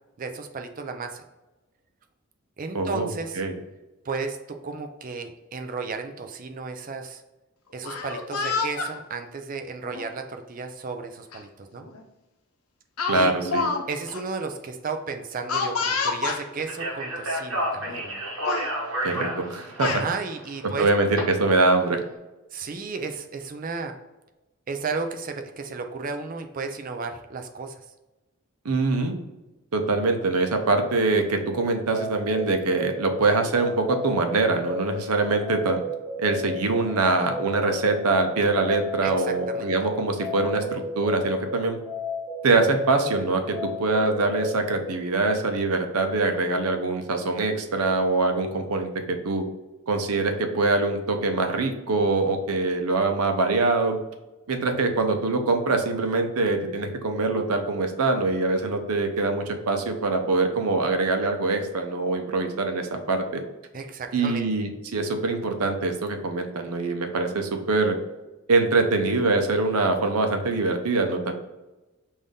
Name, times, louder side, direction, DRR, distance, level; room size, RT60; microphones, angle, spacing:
voice 1, 0.2-1.2 2.6-3.4 4.0-7.2 7.7-11.9 13.1-13.3 13.9-18.0 19.8-20.9 22.5-23.9 24.7-27.9 39.0-39.7 63.7-64.5, right 4 dB, 35° right, 6 dB, 0.4 m, -33 dB
voice 2, 2.7-3.1 3.4-3.5 13.1-13.7 19.0-19.9 20.8-22.0 28.6-29.1 29.7-35.8 36.2-41.8 42.4-49.4 49.9-54.0 54.5-63.4 64.1-68.0 68.5-71.3, right 3 dB, 85° right, 5 dB, 0.7 m, -24 dB
Speech, 7.7-8.9 9.8-10.1 11.3-11.4 11.8-12.0 13.0-13.8 14.1-14.2 15.5-16.4 17.3-17.4 17.8-18.1 18.4-18.7 19.5-20.0, left 4 dB, 75° left, 0.7 m, -28 dB
Speech 2, 16.6-21.2, right 1 dB, 65° right, 1.2 m, -31 dB
sound 1, 31.5-44.7, left 2 dB, ahead, 1.4 m, -34 dB
5.4 x 2.7 x 3.5 m, 1.1 s
head